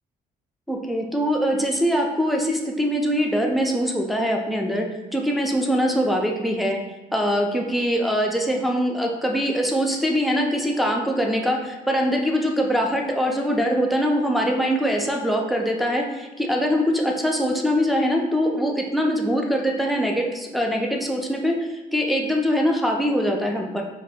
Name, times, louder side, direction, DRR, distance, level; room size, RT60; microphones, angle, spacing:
voice 1, 0.7-4.9 5.1-6.8 7.1-23.8, equal, ahead, 0 dB, 0.3 m, -23 dB
2.4 x 2.2 x 3.4 m, 1.1 s
cardioid pair, 110°, 17 cm